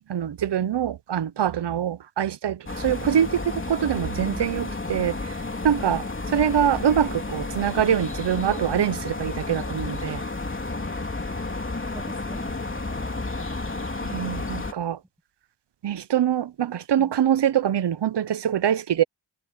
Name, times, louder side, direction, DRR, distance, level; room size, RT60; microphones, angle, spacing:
voice 1, 0.0-5.3 5.6-6.0 6.3-10.2 14.0-15.0 15.8-19.0, right 9 dB, 70° right, 0.8 m, -24 dB
sound 1, 2.7-14.7, left 2 dB, 30° left, 3.2 m, -31 dB
voice 2, 11.9-13.3 17.0-17.1, equal, 5° right, 5.9 m, -44 dB
wide cardioid pair, 105°, 43 cm